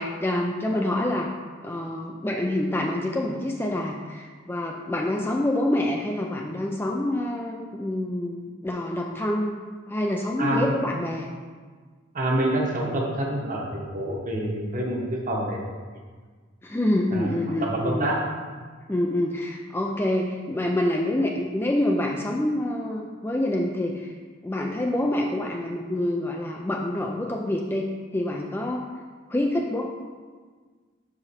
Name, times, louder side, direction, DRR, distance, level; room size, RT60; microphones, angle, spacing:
voice 1, 0.0-1.3 1.6-11.3 16.6-18.1 18.9-24.1 24.4-28.8 29.3-29.8, left 1 dB, 10° left, 0 dB, 0.3 m, -27 dB
voice 2, 10.4-10.8 12.1-15.0 15.3-15.6 17.1-18.2, right 1 dB, 40° right, -2 dB, 1.1 m, -27 dB
6.3 x 4.9 x 4.2 m, 1.5 s
head